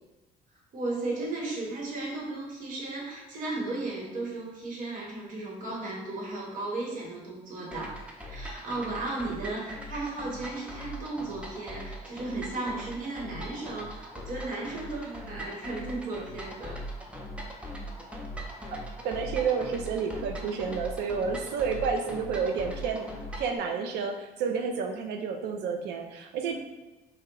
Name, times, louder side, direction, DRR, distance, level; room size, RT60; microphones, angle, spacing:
voice 1, 0.7-16.8, right 2 dB, 55° right, -2 dB, 1.0 m, -35 dB
sound 1, 7.7-23.6, equal, 5° right, 0.4 m, -40 dB
voice 2, 19.0-23.1 23.4-26.6, right 5 dB, 80° right, 4 dB, 0.5 m, -30 dB
2.8 x 2.1 x 3.7 m, 1.1 s
cardioid pair, 110°, 17 cm